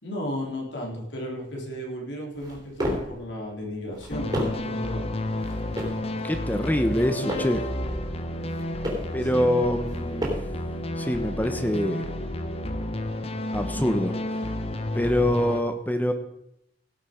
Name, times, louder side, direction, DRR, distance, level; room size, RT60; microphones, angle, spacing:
voice 1, 0.0-5.1 9.2-9.6, equal, 80° left, -1 dB, 3.5 m, -34 dB
sound 1, 2.3-3.2 3.8-4.7 5.4-6.1 6.8-7.6 8.3-9.2 9.8-10.6, equal, 25° right, 3.3 m, -32 dB
sound 2, 4.1-15.6, left 1 dB, 35° left, 1.0 m, -31 dB
voice 2, 6.2-7.6 9.1-10.3 11.0-12.0 13.5-14.2 14.9-16.1, equal, 10° left, 7 dB, 0.9 m, -24 dB
17.0 x 7.4 x 5.1 m, 0.80 s
head